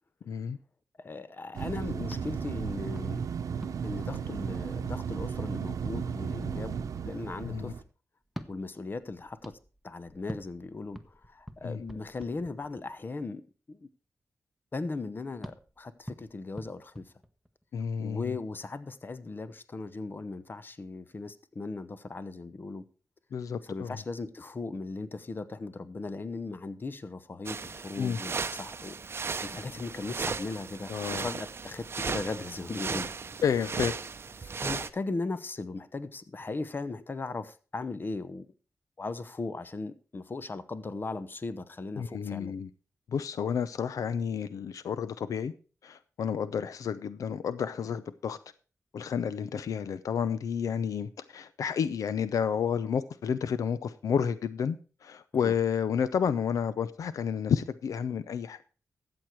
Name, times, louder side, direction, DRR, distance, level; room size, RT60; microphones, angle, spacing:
voice 1, 0.3-0.6 7.4-7.7 11.6-11.8 17.7-18.3 23.3-24.0 28.0-28.2 30.9-31.3 33.4-33.9 42.0-42.7 43.1-45.5 45.8-48.4 48.9-54.8 55.0-58.6, left 7 dB, 85° left, 15 dB, 0.6 m, -30 dB
voice 2, 1.0-3.3 3.8-7.7 8.5-9.6 9.8-13.4 13.7-13.9 14.7-17.1 18.0-22.8 23.6-29.0 29.4-33.1 34.4-38.5 39.0-42.5 55.4-55.5, left 3 dB, 40° left, 14 dB, 0.9 m, -38 dB
sound 1, 1.5-7.8, right 7 dB, 90° right, 0.9 m, -34 dB
sound 2, 2.0-5.9 8.2-13.1 15.4-17.8, equal, ahead, 1.0 m, -47 dB
sound 3, 27.5-34.9, right 5 dB, 45° right, 0.7 m, -36 dB
13.5 x 7.9 x 4.6 m, 0.36 s
cardioid pair, 85°, 6 cm